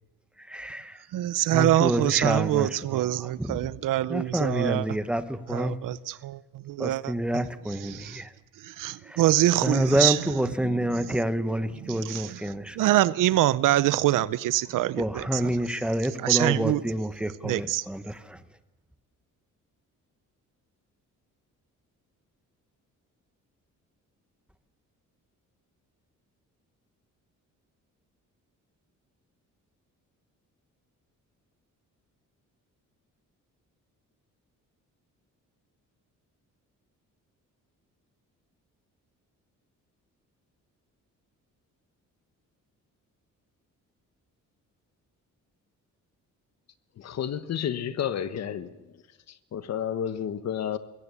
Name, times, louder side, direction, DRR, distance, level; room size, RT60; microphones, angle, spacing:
voice 1, 0.4-1.0 1.5-3.7 4.1-5.8 6.8-8.3 9.0-9.2 9.6-12.8 15.0-18.4, right 1 dB, 5° right, 1.0 m, -28 dB
voice 2, 1.1-4.8 5.5-7.1 7.8-8.2 8.6-10.2 10.6-10.8 11.8-12.4 12.8-15.4 16.2-16.8 17.4-17.9, right 14 dB, 85° right, 0.7 m, -25 dB
voice 3, 47.0-48.7 49.3-50.8, left 9 dB, 55° left, 1.3 m, -31 dB
22.0 x 17.0 x 8.3 m
cardioid pair, 155°, 31 cm